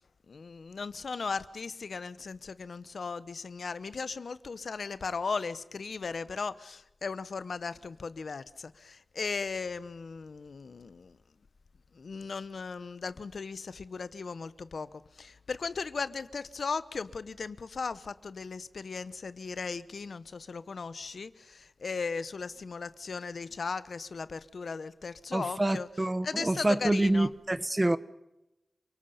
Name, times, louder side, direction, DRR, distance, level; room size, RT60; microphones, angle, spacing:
voice 1, 0.3-11.2 11.9-25.9 26.2-27.3, left 4 dB, 80° left, 0.8 m, -37 dB
voice 2, 25.3-28.0, right 1 dB, 25° right, 1.0 m, -27 dB
29.0 x 18.5 x 5.6 m
wide cardioid pair, 70°, 0 cm